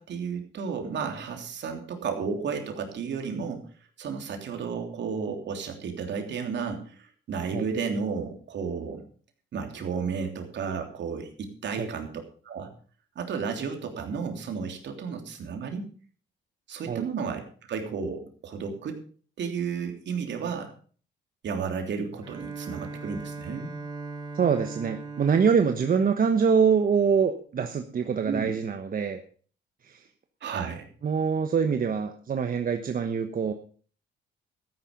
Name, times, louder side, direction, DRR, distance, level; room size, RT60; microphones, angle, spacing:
voice 1, 0.0-3.7 4.0-9.0 9.5-12.7 13.1-15.9 16.7-17.4 17.7-19.0 19.4-20.7 21.4-23.8 28.2-28.5 30.4-30.9, right 6 dB, 65° right, 4 dB, 3.3 m, -33 dB
Bowed string instrument, 22.2-27.0, right 4 dB, 20° right, 3.0 m, -40 dB
voice 2, 24.3-29.2 29.8-30.0 31.0-33.5, right 6 dB, 45° right, 6 dB, 1.2 m, -24 dB
13.5 x 10.5 x 5.3 m, 0.42 s
cardioid pair, 90°, 20 cm